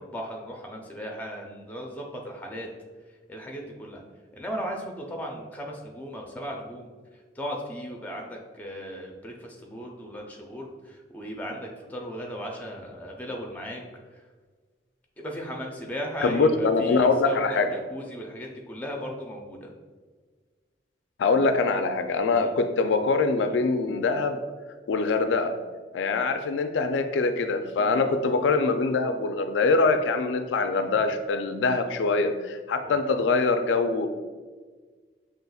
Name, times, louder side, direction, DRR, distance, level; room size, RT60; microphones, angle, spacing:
voice 1, 0.0-2.7 3.3-4.0 4.3-13.8 14.1-14.2 15.2-19.7 22.3-22.6 27.8-28.2 32.8-33.0, equal, 10° left, 0 dB, 0.5 m, -37 dB
voice 2, 16.2-17.7 21.2-24.4 24.9-25.5 25.9-34.1, left 3 dB, 90° left, 7 dB, 0.3 m, -23 dB
5.5 x 2.9 x 2.3 m, 1.4 s
head